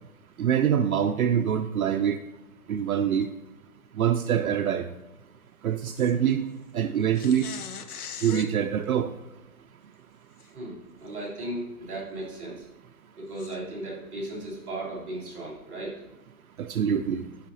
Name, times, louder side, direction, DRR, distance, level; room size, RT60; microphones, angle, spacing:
voice 1, 0.4-2.2 2.7-3.3 4.0-4.9 5.6-6.4 6.7-7.5 8.2-9.1 16.6-17.2, right 8 dB, 70° right, 7 dB, 0.5 m, -24 dB
sound 1, 5.9-6.1 7.1-8.5 10.4-10.5 11.1-11.2 13.4-13.6, left 7 dB, 80° left, 0.7 m, -40 dB
voice 2, 10.4-12.7 13.1-16.0, right 1 dB, 5° right, -15 dB, 1.9 m, -36 dB
10.0 x 5.7 x 2.7 m, 0.96 s
hypercardioid pair, 175°, 45 cm